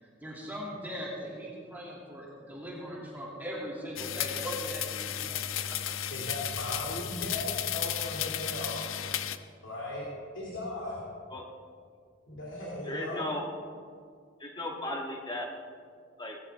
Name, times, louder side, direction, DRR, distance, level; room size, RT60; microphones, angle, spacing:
voice 1, 0.2-5.4, equal, 10° right, -5 dB, 2.6 m, -39 dB
sound 1, 4.0-9.4, left 10 dB, 85° left, 0.6 m, -34 dB
voice 2, 6.1-9.1 9.6-10.1 10.3-11.0 12.3-13.3, left 1 dB, 70° left, -4 dB, 2.5 m, -37 dB
voice 3, 12.8-13.4 14.4-15.5 16.2-16.4, left 1 dB, 20° left, 0 dB, 1.6 m, -36 dB
18.5 x 14.0 x 3.6 m, 2.1 s
head